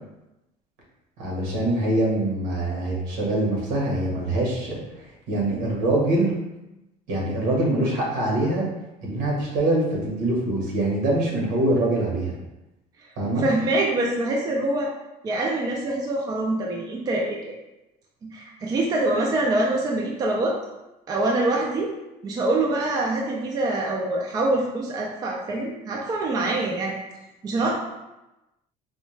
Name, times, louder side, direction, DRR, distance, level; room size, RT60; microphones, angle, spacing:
voice 1, 1.2-4.8 5.3-6.3 7.1-8.6 9.0-12.3 13.2-13.5, right 1 dB, 75° right, -3 dB, 1.4 m, -24 dB
voice 2, 13.4-14.9 15.2-17.6 18.2-20.5 21.1-21.9 22.2-26.9 27.4-27.7, right 2 dB, 25° right, -1 dB, 0.4 m, -25 dB
4.3 x 2.3 x 3.2 m, 0.97 s
cardioid pair, 155°, 16 cm